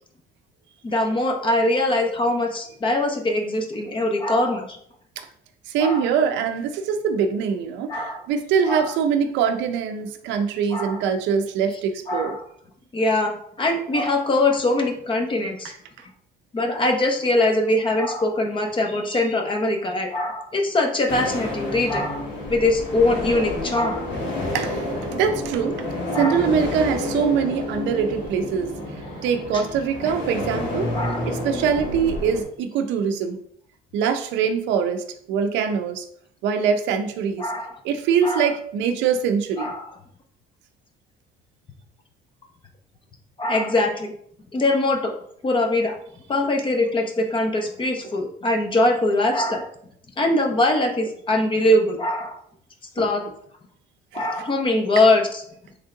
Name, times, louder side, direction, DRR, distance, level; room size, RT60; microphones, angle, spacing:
voice 1, 0.8-4.8 5.8-6.0 7.9-8.2 8.7-8.8 10.7-11.0 12.1-12.4 12.9-15.7 16.5-24.1 26.1-26.4 30.9-31.3 37.4-37.7 38.2-38.5 39.6-39.9 43.4-44.1 44.5-45.1 45.4-46.0 46.3-49.7 50.2-52.4 53.0-53.3 54.1-55.3, left 2 dB, 25° left, 4 dB, 0.8 m, -22 dB
voice 2, 5.7-12.4 15.6-15.7 24.5-30.9 31.2-33.4 33.9-36.1 36.4-37.5 37.8-39.7 53.0-53.1 54.1-54.3, right 7 dB, 85° right, 8 dB, 0.6 m, -23 dB
sound 1, 21.1-32.4, left 2 dB, 80° left, 1.7 m, -29 dB
3.6 x 3.3 x 3.8 m, 0.66 s
cardioid pair, 115°, 18 cm